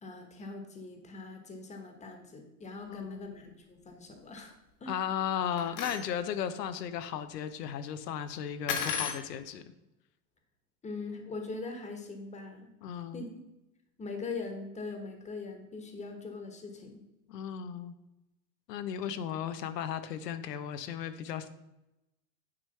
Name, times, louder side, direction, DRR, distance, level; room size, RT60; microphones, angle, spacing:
voice 1, 0.0-4.5 4.8-5.0 10.8-12.7 13.1-13.4 14.0-17.0, left 3 dB, 15° left, 5 dB, 1.2 m, -41 dB
voice 2, 2.9-3.3 4.9-9.6 12.8-13.3 17.3-17.9 18.7-21.5, left 9 dB, 90° left, 10 dB, 0.8 m, -35 dB
sound 1, 5.6-6.0 8.7-9.2, left 7 dB, 40° left, 1.2 m, -33 dB
9.7 x 3.3 x 5.5 m, 0.94 s
supercardioid pair, 130°, 47 cm